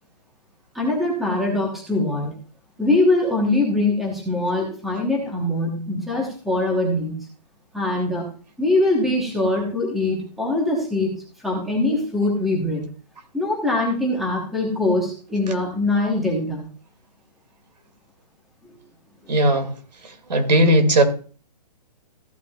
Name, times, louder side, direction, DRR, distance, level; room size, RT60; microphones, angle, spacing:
voice 1, 0.7-2.3 2.8-7.3 7.7-8.3 8.6-11.1 11.4-12.8 13.3-16.6 18.6-18.7 19.2-19.3, left 2 dB, ahead, 1.1 m, -22 dB
voice 2, 19.3-19.7 20.3-21.0, right 1 dB, 75° right, 2.3 m, -17 dB
14.5 x 9.2 x 2.3 m
hypercardioid pair, 180°, 21 cm